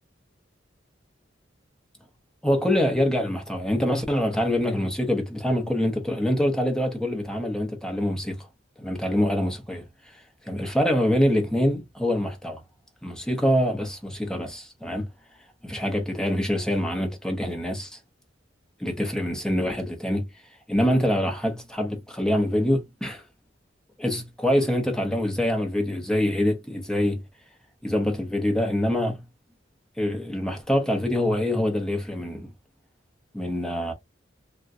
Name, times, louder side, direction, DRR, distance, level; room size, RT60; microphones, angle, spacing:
voice 1, 2.4-8.5 8.8-9.8 10.1-12.6 13.0-15.1 15.6-18.0 18.8-20.3 20.7-23.2 24.0-27.2 27.8-29.2 30.0-32.5 33.3-33.9, equal, 5° left, 0.7 m, -25 dB
3.6 x 2.1 x 2.5 m
head